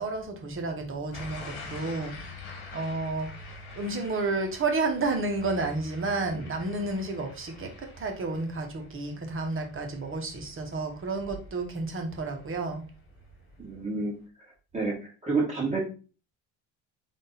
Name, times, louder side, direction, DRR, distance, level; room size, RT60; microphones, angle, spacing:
voice 1, 0.0-2.3 2.7-3.3 3.7-12.8, right 3 dB, 35° right, 3 dB, 1.2 m, -31 dB
sound 1, 1.1-12.0 12.4-12.8, left 2 dB, 70° left, 1.6 m, -46 dB
voice 2, 13.6-14.1 14.7-16.0, right 3 dB, 20° right, -4 dB, 2.1 m, -29 dB
3.6 x 2.6 x 4.0 m, 0.35 s
supercardioid pair, 90°, 38 cm